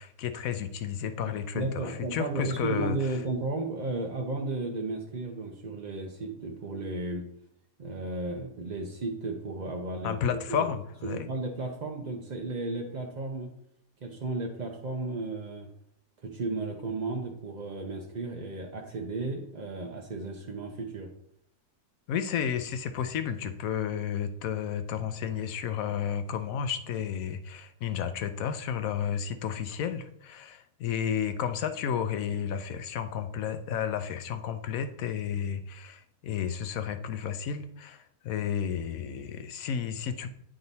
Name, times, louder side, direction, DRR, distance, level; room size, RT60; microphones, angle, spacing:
voice 1, 0.0-3.0 10.0-11.3 22.1-40.3, left 8 dB, 70° left, 9 dB, 0.9 m, -32 dB
voice 2, 1.5-7.3 7.8-10.7 11.0-13.5 14.0-15.7 16.2-21.1, right 3 dB, 50° right, 1 dB, 0.5 m, -34 dB
8.9 x 3.8 x 4.0 m, 0.73 s
omnidirectional pair, 1.7 m